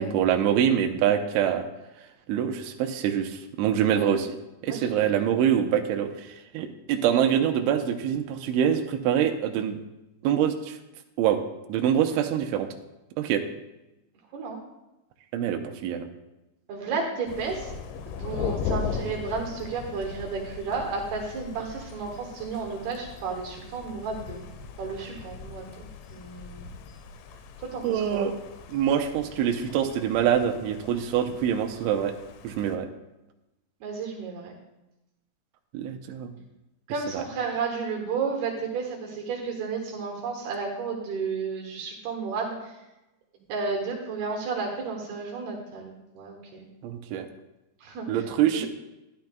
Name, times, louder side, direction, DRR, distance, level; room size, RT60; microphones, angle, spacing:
voice 1, 0.0-1.7 2.3-4.3 4.6-9.8 10.2-10.8 11.2-11.4 11.7-12.7 13.2-13.4 15.3-16.1 27.8-28.3 28.7-32.1 32.4-32.9 35.7-36.3 37.1-37.2 46.8-47.3 48.1-48.7, right 9 dB, 85° right, 5 dB, 3.0 m, -25 dB
voice 2, 4.7-5.2 14.3-14.6 16.7-17.7 18.1-24.4 24.8-26.6 27.7-28.3 33.8-34.5 36.9-42.7 43.5-46.7 47.8-48.2 48.5-48.7, right 4 dB, 65° right, 0 dB, 2.9 m, -32 dB
Thunder, 17.3-32.8, left 6 dB, 80° left, 2.8 m, -38 dB
12.0 x 12.0 x 2.3 m, 0.97 s
omnidirectional pair, 5.4 m